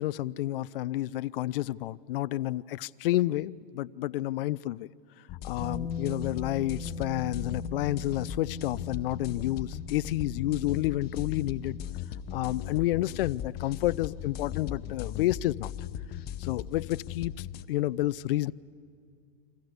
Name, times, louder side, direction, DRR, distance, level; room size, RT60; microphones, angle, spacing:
voice 1, 0.0-4.9 5.4-11.8 12.3-15.7 16.4-18.5, left 15 dB, 65° left, 19 dB, 0.6 m, -30 dB
sound 1, 5.3-17.6, left 10 dB, 30° left, 1.0 m, -38 dB
Bass guitar, 5.6-11.9, left 2 dB, 5° left, 3.7 m, -41 dB
30.0 x 24.0 x 8.1 m, 2.4 s
hypercardioid pair, 130°, 30 cm